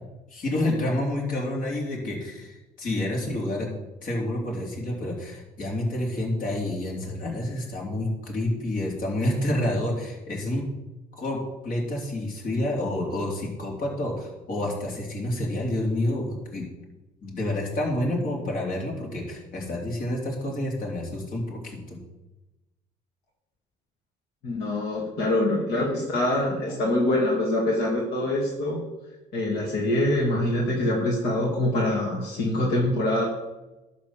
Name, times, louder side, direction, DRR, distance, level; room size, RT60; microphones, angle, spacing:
voice 1, 0.3-3.7 4.0-10.7 11.2-16.7 17.2-22.0, left 1 dB, 55° left, -1 dB, 3.5 m, -29 dB
voice 2, 24.4-28.8 29.3-33.2, left 1 dB, 75° left, -3 dB, 2.4 m, -24 dB
11.5 x 4.2 x 7.3 m, 1.0 s
cardioid pair, 110°, 17 cm